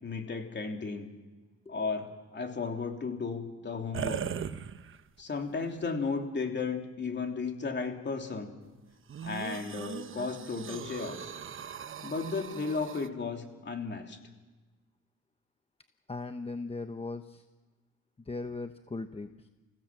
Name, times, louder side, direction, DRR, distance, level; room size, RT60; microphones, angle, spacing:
voice 1, 0.0-1.1 1.7-4.2 5.2-8.5 9.2-11.3 12.0-14.2, left 4 dB, 35° left, 4 dB, 3.2 m, -34 dB
sound 1, 3.9-5.2 5.8-5.9 9.1-13.1, right 8 dB, 45° right, 0.9 m, -39 dB
voice 2, 16.1-17.4 18.2-19.5, left 3 dB, 20° left, 8 dB, 0.9 m, -38 dB
26.5 x 16.5 x 7.5 m, 1.2 s
cardioid pair, 90°, 30 cm